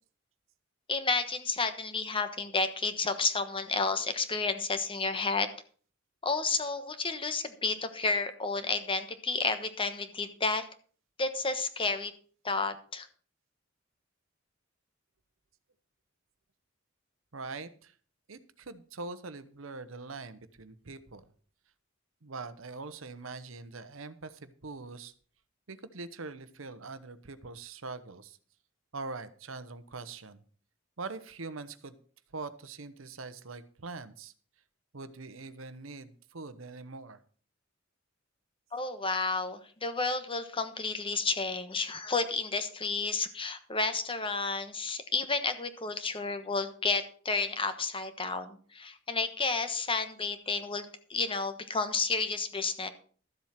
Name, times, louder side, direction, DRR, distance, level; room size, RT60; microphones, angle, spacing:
voice 1, 0.9-5.5 6.2-10.7 11.2-12.1 12.4-13.1 38.7-52.9, left 4 dB, 25° left, 10 dB, 1.2 m, -31 dB
voice 2, 17.3-17.9 18.3-21.2 22.2-25.1 25.7-28.4 28.9-30.4 31.0-31.9 32.3-34.3 34.9-37.2, right 3 dB, 85° right, 13 dB, 1.0 m, -43 dB
13.0 x 7.5 x 5.8 m, 0.43 s
head